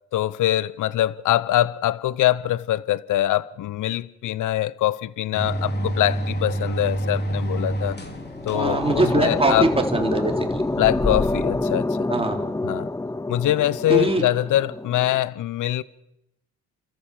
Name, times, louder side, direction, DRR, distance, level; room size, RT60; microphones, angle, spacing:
voice 1, 0.1-8.0 8.4-9.7 10.8-11.9 12.6-12.9 13.3-15.8, left 13 dB, 60° left, 0.8 m, -23 dB
sound 1, 5.3-11.6, equal, 30° left, 3.5 m, -28 dB
sound 2, 8.0-15.2, left 2 dB, 10° left, 0.7 m, -27 dB
voice 2, 8.5-10.6 12.1-12.4 13.9-14.2, right 2 dB, 15° right, 3.9 m, -22 dB
29.5 x 14.0 x 7.4 m
supercardioid pair, 80°, 35 cm